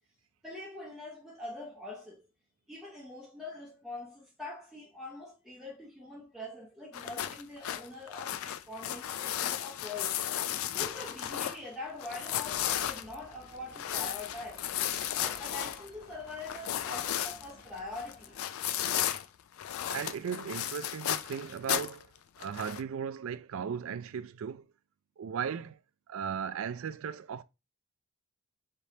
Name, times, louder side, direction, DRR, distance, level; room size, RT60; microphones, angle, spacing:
voice 1, 0.4-2.3 2.7-10.1 10.6-18.3, left 2 dB, ahead, 0.5 m, -44 dB
sound 1, 6.9-11.7 12.0-19.2 19.6-22.0 22.4-22.8, left 11 dB, 65° left, 0.3 m, -34 dB
sound 2, 12.5-18.4, left 1 dB, 35° left, 0.8 m, -57 dB
voice 2, 19.9-22.1 22.4-24.7 25.2-25.8 26.1-27.4, right 7 dB, 65° right, 0.3 m, -36 dB
4.1 x 3.3 x 2.7 m
head